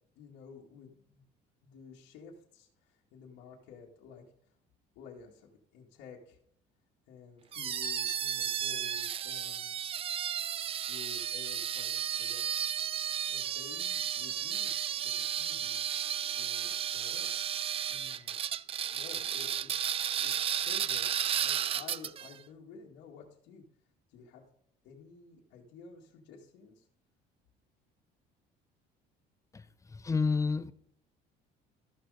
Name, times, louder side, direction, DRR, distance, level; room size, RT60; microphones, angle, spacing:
voice 1, 0.2-1.3 1.6-4.6 5.0-6.4 7.1-9.7 10.9-12.8 13.3-18.4 18.9-19.9 20.2-23.6 24.1-24.4 24.8-26.9, left 5 dB, 80° left, 2.0 m, -52 dB
sound 1, 7.5-22.3, right 9 dB, 30° right, 0.3 m, -33 dB
Microwave oven, 13.9-14.2 14.7-21.5, right 6 dB, 65° right, 2.5 m, -61 dB
voice 2, 29.9-30.7, left 4 dB, 15° left, 0.6 m, -29 dB
13.0 x 6.2 x 4.9 m
cardioid pair, 120°, 18 cm